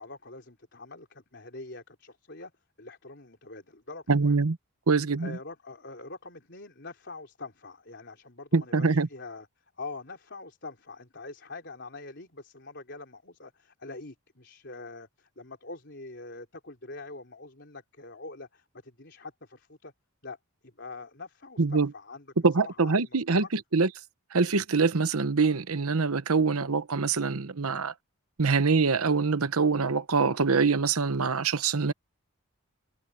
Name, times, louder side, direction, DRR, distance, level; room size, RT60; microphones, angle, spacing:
voice 1, 0.0-2.5 2.8-4.4 5.2-9.5 9.8-19.9 20.2-20.4 20.6-22.3 22.6-23.5, left 3 dB, 50° left, 4.0 m, -44 dB
voice 2, 4.1-4.6 4.9-5.4 8.5-9.1 21.6-21.9 22.4-23.9 24.3-27.9 28.4-31.9, right 4 dB, 75° right, 0.9 m, -24 dB
head